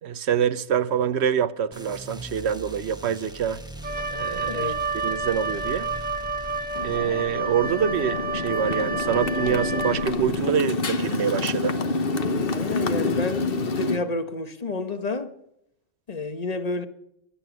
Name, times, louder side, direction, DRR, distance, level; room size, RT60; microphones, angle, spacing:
voice 1, 0.0-3.6 4.1-4.7 4.9-5.9 6.8-11.8, right 8 dB, 70° right, 1.0 m, -25 dB
sound 1, 1.7-7.0, right 1 dB, 5° right, 1.1 m, -41 dB
Wind instrument woodwind instrument, 3.8-10.4, right 3 dB, 40° right, 1.5 m, -30 dB
voice 2, 4.5-4.8 12.5-15.3 16.1-16.9, left 3 dB, 35° left, 1.3 m, -30 dB
Motorcycle, 6.8-14.0, left 3 dB, 55° left, 1.3 m, -27 dB
23.0 x 8.7 x 6.1 m
omnidirectional pair, 1.2 m